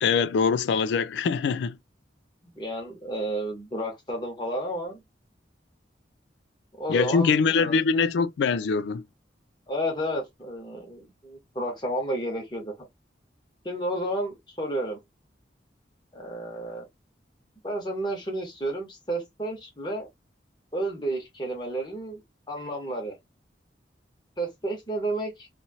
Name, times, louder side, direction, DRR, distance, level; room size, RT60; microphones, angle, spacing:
voice 1, 0.0-1.8 6.9-9.0, left 5 dB, 75° left, 0.3 m, -23 dB
voice 2, 2.5-5.0 6.8-7.8 9.7-12.7 13.6-15.0 16.1-16.8 17.6-20.1 20.7-22.2 22.5-23.1 24.4-25.5, right 1 dB, 25° left, 1.1 m, -31 dB
2.8 x 2.4 x 2.7 m
head